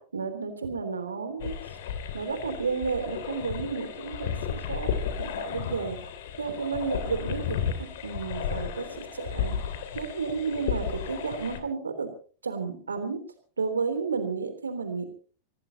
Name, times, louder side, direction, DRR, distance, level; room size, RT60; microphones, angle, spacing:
voice 1, 0.0-1.6 2.1-4.9 5.2-9.5 9.9-12.1 12.4-13.2 13.6-15.1, right 5 dB, 75° right, 8 dB, 3.3 m, -32 dB
sound 1, 1.4-11.6, left 7 dB, 55° left, 2.9 m, -33 dB
25.5 x 18.0 x 2.9 m, 0.40 s
figure-of-eight pair, 90°, 0 cm